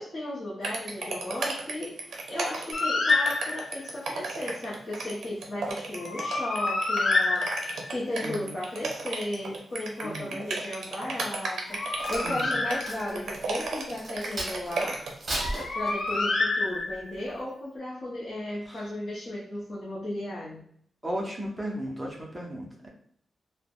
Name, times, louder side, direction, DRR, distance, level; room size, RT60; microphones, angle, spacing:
voice 1, 0.0-1.9 2.3-7.5 7.9-15.0 15.7-20.6, left 1 dB, 35° left, -8 dB, 0.6 m, -35 dB
sound 1, 0.6-15.3, right 3 dB, 85° right, 0.5 m, -34 dB
Bird, 2.7-3.9 5.9-8.0 11.5-13.3 15.3-17.2, left 3 dB, 80° left, 0.5 m, -28 dB
voice 2, 8.2-8.6 10.0-10.4 12.2-12.6 18.7-18.8 21.0-22.9, equal, 10° right, -2 dB, 0.6 m, -35 dB
Crack, 11.7-14.8 15.2-16.4 16.9-17.1, right 1 dB, 40° right, 0.9 m, -36 dB
3.2 x 2.0 x 2.2 m, 0.63 s
wide cardioid pair, 165°, 0 cm